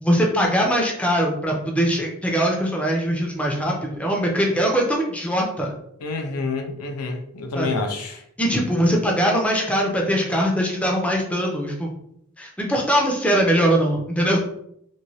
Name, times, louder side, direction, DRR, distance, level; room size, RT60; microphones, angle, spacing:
voice 1, 0.0-5.7 7.6-7.8 8.4-11.9 12.4-14.4, equal, 5° left, -1 dB, 0.4 m, -21 dB
voice 2, 6.0-8.2, left 3 dB, 85° left, 5 dB, 0.5 m, -28 dB
3.0 x 2.7 x 2.7 m, 0.72 s
head